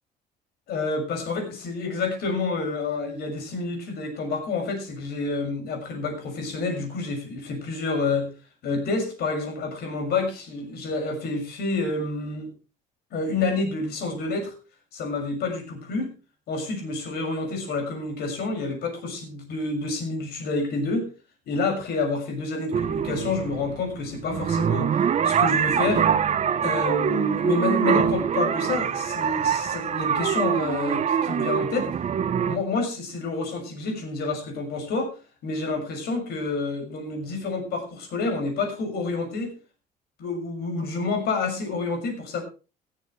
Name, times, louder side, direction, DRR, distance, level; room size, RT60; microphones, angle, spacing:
voice 1, 0.7-8.3 8.6-12.5 13.1-14.5 14.9-16.1 16.5-21.1 21.5-26.1 26.6-31.9 32.4-35.1 35.4-39.5 40.2-42.4, left 3 dB, 70° left, 4 dB, 6.4 m, -28 dB
sound 1, 22.7-32.6, right 8 dB, 40° right, 1.0 m, -24 dB
16.0 x 14.5 x 3.3 m, 0.32 s
cardioid pair, 110°, 17 cm